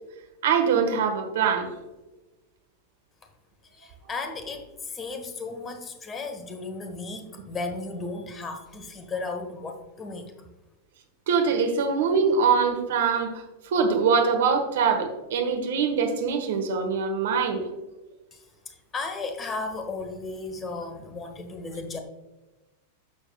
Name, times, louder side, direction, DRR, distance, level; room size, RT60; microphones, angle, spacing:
voice 1, 0.4-1.7 11.3-17.7, right 5 dB, 55° right, 5 dB, 1.3 m, -23 dB
voice 2, 3.7-10.3 18.3-18.4 18.9-22.0, left 3 dB, 20° left, 6 dB, 1.2 m, -35 dB
11.5 x 7.0 x 2.3 m, 1.1 s
figure-of-eight pair, 90°, 0 cm